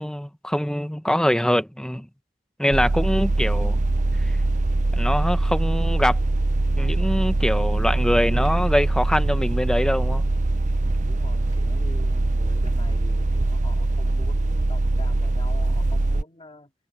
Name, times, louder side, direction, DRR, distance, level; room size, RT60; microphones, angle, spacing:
voice 1, 0.0-2.1 2.6-3.8 4.9-6.2 6.8-10.2, equal, 5° left, 1.0 m, -23 dB
sound 1, 2.7-16.2, right 2 dB, 45° right, 0.6 m, -22 dB
voice 2, 10.8-16.7, left 1 dB, 30° left, 2.6 m, -45 dB
head